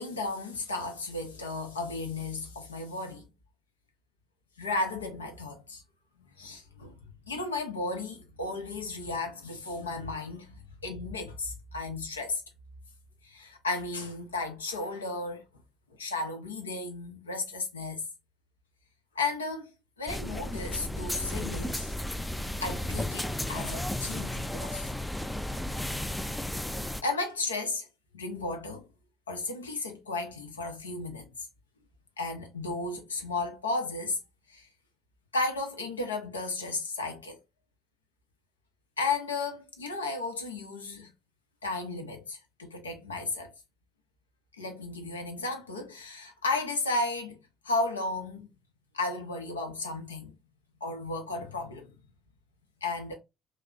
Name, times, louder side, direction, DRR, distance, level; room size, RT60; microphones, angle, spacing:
voice 1, 0.0-3.3 4.6-5.8 6.4-7.0 7.3-12.4 13.2-15.4 15.9-18.0 19.1-19.7 20.0-21.9 22.6-24.9 27.0-27.9 28.1-28.9 29.3-31.5 32.2-34.2 34.5-34.7 35.3-37.4 39.0-41.1 41.6-43.5 44.6-47.4 47.6-48.5 48.9-50.4 50.8-51.9 52.8-53.1, left 3 dB, 80° left, 0.6 m, -34 dB
sound 1, 20.1-27.0, left 1 dB, 5° left, 0.3 m, -34 dB
3.1 x 2.0 x 3.6 m
figure-of-eight pair, 50°, 0 cm